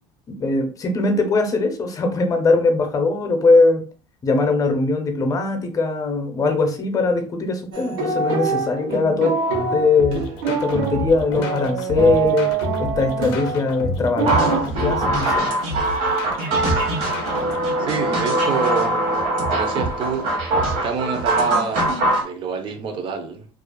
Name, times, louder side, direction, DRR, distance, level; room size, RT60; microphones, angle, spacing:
voice 1, 0.4-3.8 4.2-9.3 9.7-15.5, left 3 dB, 30° left, 0.6 m, -21 dB
sound 1, 7.7-14.6, right 5 dB, 80° right, 0.8 m, -25 dB
sound 2, 10.0-17.6, left 3 dB, 80° left, 0.5 m, -33 dB
sound 3, 14.3-22.2, right 2 dB, 60° right, 1.1 m, -22 dB
voice 2, 17.8-19.0 19.5-20.3 20.8-23.5, right 5 dB, 45° right, 0.6 m, -27 dB
2.4 x 2.3 x 2.3 m
supercardioid pair, 100°, 12 cm